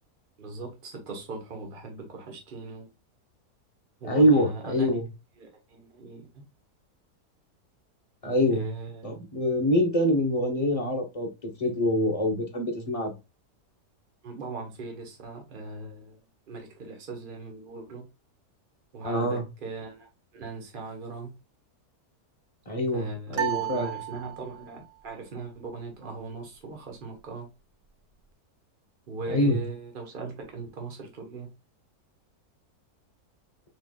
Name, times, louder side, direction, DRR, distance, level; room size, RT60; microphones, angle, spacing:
voice 1, 0.4-2.9 4.0-5.0 5.4-6.4 8.4-9.1 14.2-16.2 16.5-18.0 18.9-21.3 22.9-27.5 29.1-31.5, right 3 dB, 35° right, 1.4 m, -39 dB
voice 2, 4.0-5.1 8.2-8.7 9.0-13.2 19.0-19.4 22.7-23.9 29.3-29.6, equal, 25° left, 0.9 m, -25 dB
sound 1, 23.3-24.8, right 13 dB, 75° right, 0.5 m, -33 dB
4.3 x 4.1 x 2.3 m
omnidirectional pair, 1.7 m